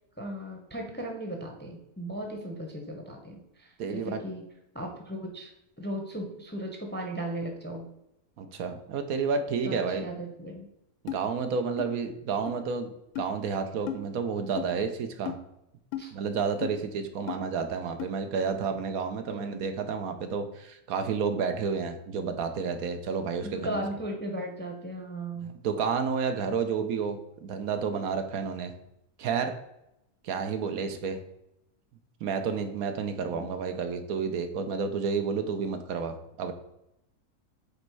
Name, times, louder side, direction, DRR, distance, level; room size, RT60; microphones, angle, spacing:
voice 1, 0.2-4.4 4.7-5.5 5.8-7.9 9.6-10.7 16.0-16.1 19.3-19.7 23.4-25.5 33.3-33.5, right 1 dB, 10° left, 2 dB, 0.7 m, -37 dB
voice 2, 3.8-4.2 8.4-10.0 11.0-12.9 13.2-15.4 16.1-23.8 25.6-28.7 29.2-29.5 30.2-31.2 32.2-36.5, right 5 dB, 75° right, 7 dB, 1.1 m, -30 dB
sound 1, 11.1-11.2 11.8-11.9 12.5-12.6 13.1-13.3 13.9-14.0 14.6-14.7 15.2-15.4 15.9-16.1 16.6-16.8 17.3-17.4 18.0-18.1, left 11 dB, 80° left, 1.1 m, -34 dB
5.2 x 4.3 x 4.6 m, 0.84 s
omnidirectional pair, 1.6 m